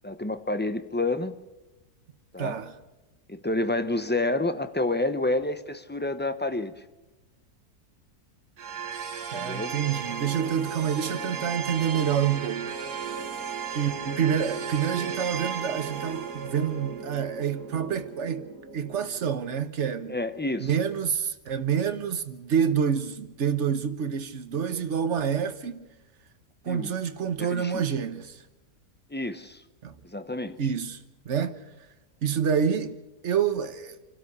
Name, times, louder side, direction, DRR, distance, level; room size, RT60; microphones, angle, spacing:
voice 1, 0.0-1.4 2.3-2.6 3.3-6.7 9.3-9.7 20.1-20.7 26.7-26.9 27.4-27.8 29.1-29.6 30.0-30.6, left 2 dB, 10° left, 0.5 m, -29 dB
voice 2, 2.4-2.7 9.3-12.7 13.7-20.2 20.6-25.9 26.6-28.4 29.8-30.0 30.6-31.0 31.2-31.6 32.2-33.0 33.2-34.0, right 7 dB, 50° right, 1.3 m, -27 dB
sound 1, 8.6-19.6, right 6 dB, 75° right, 2.1 m, -35 dB
27.0 x 12.5 x 8.3 m
omnidirectional pair, 1.7 m